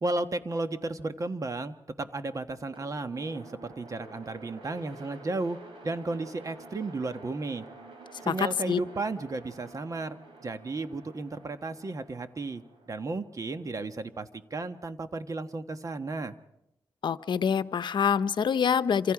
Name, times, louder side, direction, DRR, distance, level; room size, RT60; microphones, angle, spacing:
voice 1, 0.0-5.6 5.8-7.6 8.2-16.3, right 2 dB, 40° right, 9 dB, 1.3 m, -34 dB
sound 1, 2.7-14.8, right 3 dB, 90° right, 7.6 m, -50 dB
voice 2, 8.3-8.8 17.0-19.1, left 7 dB, 65° left, 12 dB, 0.9 m, -26 dB
26.5 x 26.5 x 4.9 m, 0.86 s
cardioid pair, 85°, 9 cm